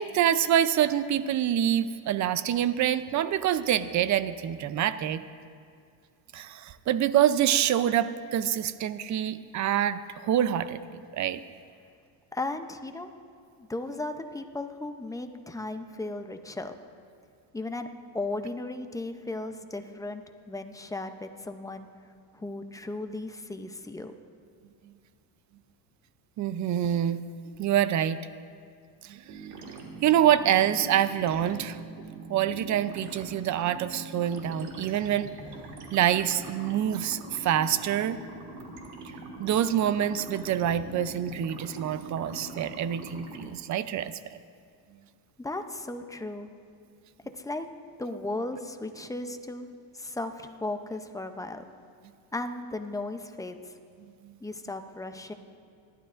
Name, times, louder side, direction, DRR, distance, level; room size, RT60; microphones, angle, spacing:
voice 1, 0.0-5.3 6.3-11.4 26.4-27.2 27.6-28.2 29.0-29.2 30.0-31.8 32.3-35.3 35.9-38.2 39.4-44.4 54.0-54.3, right 10 dB, 45° right, 13 dB, 0.5 m, -26 dB
voice 2, 12.3-13.1 13.6-16.7 17.5-17.9 18.1-21.9 22.3-24.1 45.4-46.5 47.3-47.7 48.0-49.7 49.9-51.6 52.3-53.7 54.4-55.3, left 2 dB, 10° left, 6 dB, 0.5 m, -36 dB
sound 1, 29.3-43.4, right 2 dB, 65° right, 2.0 m, -43 dB
28.0 x 12.0 x 2.5 m, 2.3 s
cardioid pair, 135°, 42 cm